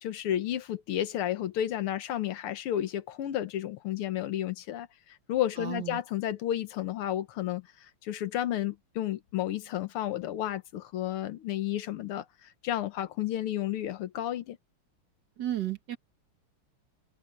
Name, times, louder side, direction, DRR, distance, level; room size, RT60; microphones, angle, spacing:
voice 1, 0.0-7.7 8.0-14.6, left 12 dB, 85° left, 2.0 m, -32 dB
voice 2, 5.6-6.0 15.4-16.0, right 12 dB, 55° right, 1.9 m, -33 dB
omnidirectional pair, 2.3 m